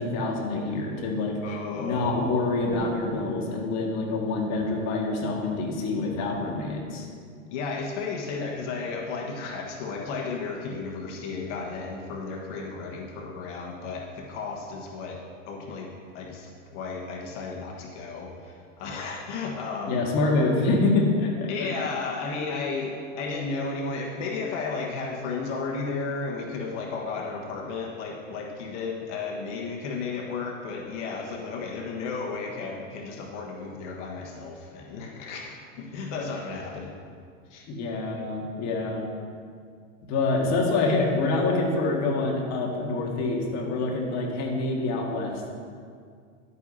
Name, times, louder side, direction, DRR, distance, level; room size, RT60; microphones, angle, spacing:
voice 1, 0.0-1.4 1.8-7.1 19.9-21.7 37.7-39.0 40.1-45.5, left 3 dB, 45° left, -1 dB, 1.9 m, -26 dB
voice 2, 1.4-2.1 7.5-15.2 15.4-20.0 21.5-36.9 37.5-37.6, left 4 dB, 65° left, -1 dB, 1.5 m, -33 dB
11.5 x 8.4 x 2.8 m, 2.1 s
supercardioid pair, 125°, 39 cm